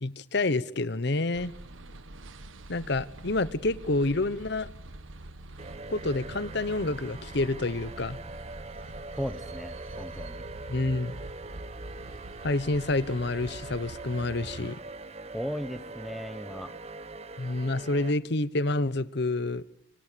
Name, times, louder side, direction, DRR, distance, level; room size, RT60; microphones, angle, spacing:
voice 1, 0.0-1.5 2.7-4.7 5.9-8.2 10.7-11.2 12.4-14.8 17.4-19.6, left 2 dB, 55° left, 1.0 m, -28 dB
sound 1, 1.3-14.7, right 1 dB, 80° right, 1.5 m, -45 dB
sound 2, 5.6-18.1, right 2 dB, 30° right, 1.1 m, -43 dB
voice 2, 9.2-10.4 15.3-16.7, equal, ahead, 1.2 m, -36 dB
26.5 x 24.5 x 6.8 m
head